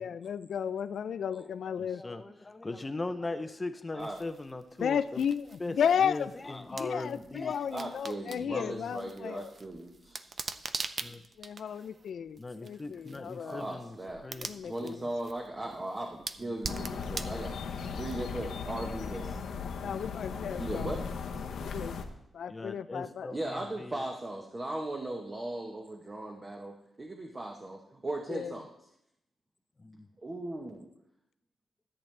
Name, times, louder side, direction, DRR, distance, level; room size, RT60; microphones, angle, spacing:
voice 1, 0.0-2.0 4.8-6.3 6.8-9.5 11.4-13.7 14.4-15.0 19.8-21.0 21.6-21.9 22.3-23.4 28.3-28.5, left 8 dB, 70° left, 14 dB, 0.4 m, -33 dB
voice 2, 1.3-5.2 5.6-7.6 8.4-8.9 11.0-11.2 12.4-14.0 14.2-15.0 22.5-24.0 29.8-30.1, left 2 dB, 20° left, 10 dB, 0.6 m, -39 dB
sound 1, 4.0-18.6, right 4 dB, 40° right, 0.5 m, -44 dB
voice 3, 7.7-10.5 13.4-14.2 14.5-17.6 18.0-19.4 20.6-21.0 23.3-28.7 30.2-30.9, right 1 dB, 25° right, 1 dB, 1.0 m, -38 dB
sound 2, 16.6-22.0, left 5 dB, 85° left, 1.0 m, -37 dB
13.5 x 8.6 x 3.3 m, 0.80 s
wide cardioid pair, 125°, 0 cm